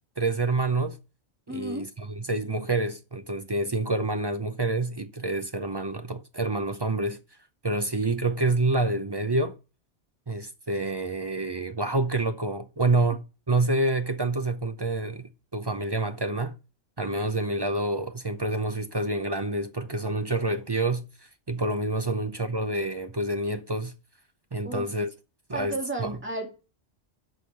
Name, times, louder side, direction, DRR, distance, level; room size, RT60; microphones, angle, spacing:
voice 1, 0.2-1.0 1.5-7.2 7.6-9.6 10.3-16.6 17.0-21.1 21.5-23.9 24.5-25.1 25.5-26.2, right 2 dB, 30° right, 0.5 m, -27 dB
voice 2, 1.5-1.8 7.8-7.9 22.1-22.2 24.6-24.9 25.5-26.5, right 2 dB, 10° right, 2.3 m, -34 dB
8.0 x 5.6 x 6.7 m
omnidirectional pair, 1.1 m